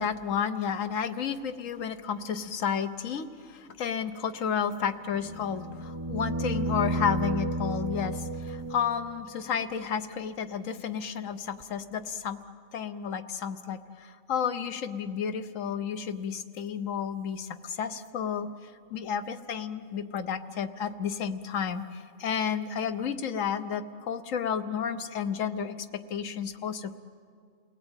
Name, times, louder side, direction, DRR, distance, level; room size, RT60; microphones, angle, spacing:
voice 1, 0.0-12.4 12.7-27.0, left 7 dB, 75° left, 10 dB, 1.4 m, -32 dB
sound 1, 5.1-9.2 11.6-11.7, right 1 dB, 30° right, 0.6 m, -32 dB
29.5 x 18.5 x 9.0 m, 2.2 s
omnidirectional pair, 1.4 m